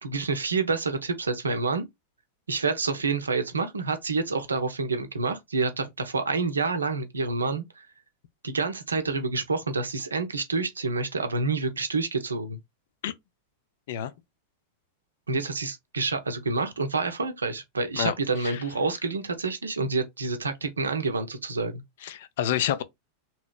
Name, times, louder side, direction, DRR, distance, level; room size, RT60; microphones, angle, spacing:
voice 1, 0.0-1.9 2.5-7.9 8.4-12.6 15.3-21.8, right 4 dB, 75° right, 0.6 m, -28 dB
voice 2, 18.0-18.6 22.0-22.8, left 10 dB, 55° left, 0.4 m, -29 dB
3.0 x 2.8 x 2.3 m
figure-of-eight pair, 90°, 0 cm